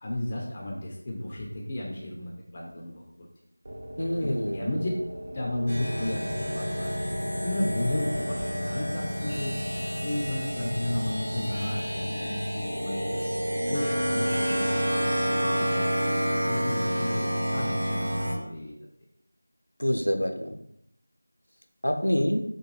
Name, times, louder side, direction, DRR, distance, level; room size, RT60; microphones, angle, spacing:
voice 1, 0.0-3.3 4.2-4.9 5.3-6.9 7.4-9.5 10.0-14.7 14.9-15.9 16.5-18.7, left 1 dB, 25° left, -3 dB, 0.4 m, -33 dB
sound 1, 3.6-15.3, equal, 40° right, 0.5 m, -40 dB
voice 2, 4.0-4.7 19.8-20.6 21.8-22.4, equal, 80° left, 5 dB, 0.5 m, -26 dB
sound 2, 5.7-18.3, equal, 80° right, 0.9 m, -29 dB
sound 3, 6.0-6.4 6.8-7.2 7.7-8.5 9.1-9.5 10.3-11.1, equal, 20° right, 0.9 m, -42 dB
3.7 x 2.2 x 3.1 m, 0.75 s
figure-of-eight pair, 170°, 0 cm